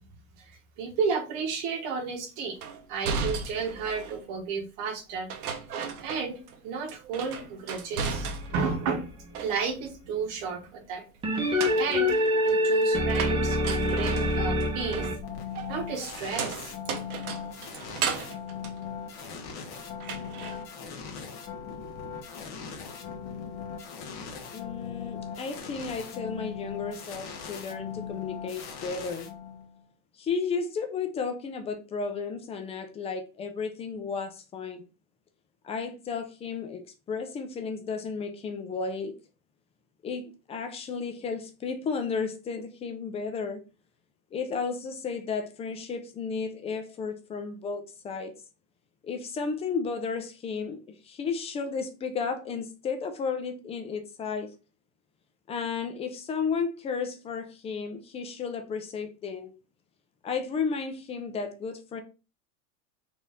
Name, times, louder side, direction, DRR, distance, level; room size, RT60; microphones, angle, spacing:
voice 1, 0.8-2.6 2.9-5.3 6.0-8.3 8.5-9.1 9.4-11.0 11.4-12.1 12.4-15.1 15.7-16.7, right 5 dB, 50° right, 1.1 m, -32 dB
sound 1, 2.6-4.2 5.3-6.6 6.9-8.8 9.1-9.9 11.3-19.6 20.0-20.6, right 5 dB, 85° right, 1.0 m, -36 dB
sound 2, 8.1-9.4 11.2-15.2, left 1 dB, 10° right, 0.9 m, -26 dB
sound 3, 15.2-29.8, left 7 dB, 35° left, 1.2 m, -39 dB
voice 2, 24.5-29.3 30.1-34.8 35.6-36.8 37.1-39.2 40.0-43.6 44.3-48.3 49.0-54.5 55.5-59.5 60.2-62.0, left 5 dB, 15° left, 0.5 m, -33 dB
4.2 x 2.8 x 3.5 m
supercardioid pair, 135°, 43 cm